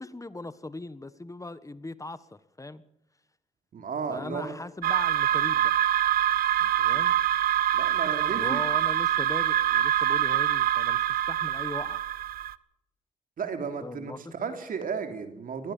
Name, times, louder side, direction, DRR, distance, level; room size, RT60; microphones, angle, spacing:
voice 1, 0.0-2.3 2.6-2.8 4.1-5.7 6.6-7.1 8.3-12.0 13.8-14.3, left 2 dB, 20° left, 15 dB, 1.5 m, -39 dB
voice 2, 3.7-4.5 6.9-7.1 7.7-8.6 13.4-15.7, right 6 dB, 70° right, 7 dB, 3.3 m, -34 dB
sound 1, 4.8-12.5, right 12 dB, 85° right, 0.7 m, -25 dB
22.0 x 16.0 x 7.4 m, 0.81 s
cardioid pair, 60°, 15 cm